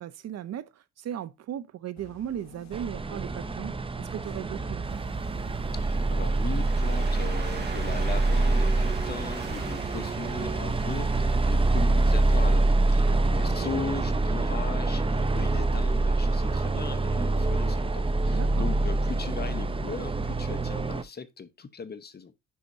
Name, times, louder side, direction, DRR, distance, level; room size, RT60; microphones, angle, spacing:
voice 1, 0.0-3.7 4.0-5.0 13.1-13.9 18.3-18.7, right 10 dB, 60° right, 0.6 m, -37 dB
sound 1, 2.0-14.0, left 8 dB, 65° left, 1.0 m, -48 dB
sound 2, 2.7-21.0, right 2 dB, 20° right, 0.6 m, -26 dB
Waves surf, 4.9-12.6, right 4 dB, 35° right, 1.8 m, -45 dB
voice 2, 5.7-22.3, left 6 dB, 35° left, 0.9 m, -39 dB
10.0 x 4.2 x 2.7 m
cardioid pair, 90°, 30 cm